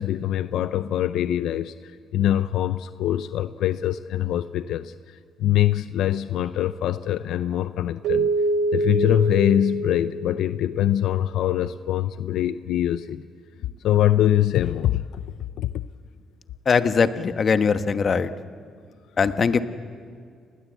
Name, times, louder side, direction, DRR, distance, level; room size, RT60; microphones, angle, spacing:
voice 1, 0.0-8.3 8.7-13.2 13.8-15.0 15.6-15.8, left 12 dB, 80° left, 13 dB, 0.6 m, -23 dB
Keyboard (musical), 8.0-11.0, right 2 dB, 75° right, 1.6 m, -25 dB
voice 2, 16.6-18.3 19.2-19.6, left 5 dB, 45° left, 10 dB, 1.3 m, -21 dB
30.0 x 20.5 x 8.1 m, 2.2 s
cardioid pair, 90°, 0 cm